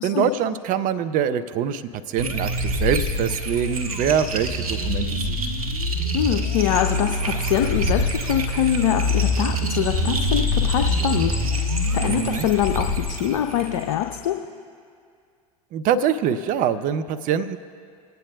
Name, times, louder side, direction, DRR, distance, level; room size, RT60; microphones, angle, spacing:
voice 1, 0.0-5.4 12.0-12.5 15.7-17.6, right 8 dB, 45° right, 11 dB, 0.6 m, -24 dB
sound 1, 2.2-14.1, left 1 dB, 85° right, 1.0 m, -25 dB
voice 2, 6.1-14.4, left 11 dB, 65° left, 5 dB, 0.6 m, -24 dB
sound 2, 8.1-13.3, left 4 dB, 10° left, 1.0 m, -41 dB
26.5 x 9.1 x 2.3 m, 2.2 s
hypercardioid pair, 75°, 18 cm